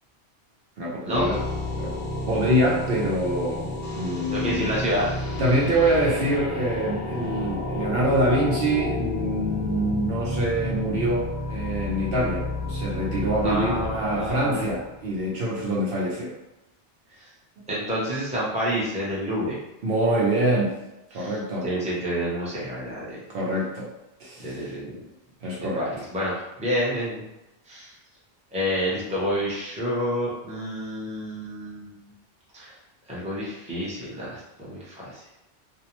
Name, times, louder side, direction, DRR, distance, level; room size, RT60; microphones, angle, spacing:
voice 1, 0.8-1.4 1.8-1.9 2.3-4.7 5.4-16.4 19.8-20.7 21.1-21.7 23.3-23.9 24.2-24.7 25.4-25.9, right 1 dB, 70° right, -4 dB, 0.8 m, -25 dB
sound 1, 1.1-15.2, left 2 dB, 75° left, 1.0 m, -31 dB
voice 2, 4.3-5.1 13.4-14.7 17.7-19.6 21.1-21.3 21.6-23.2 24.4-25.0 25.6-27.2 27.7-27.9 28.5-32.0 32.5-32.7 33.1-34.4 34.7-35.2, equal, 10° right, -7 dB, 0.7 m, -28 dB
2.5 x 2.0 x 2.9 m, 0.94 s
omnidirectional pair, 1.0 m